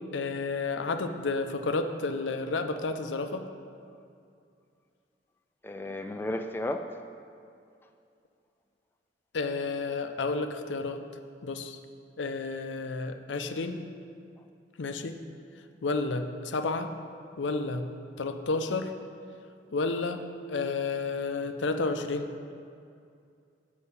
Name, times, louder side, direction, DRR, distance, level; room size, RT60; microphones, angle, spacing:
voice 1, 0.1-3.5 9.3-11.0 11.4-11.8 12.2-13.9 14.8-15.2 15.8-16.9 17.4-17.9 18.2-18.9 19.7-20.2 20.5-22.3, left 3 dB, 85° left, 7 dB, 0.6 m, -31 dB
voice 2, 5.6-6.9, left 1 dB, 10° left, 5 dB, 0.3 m, -33 dB
8.6 x 4.8 x 7.0 m, 2.4 s
head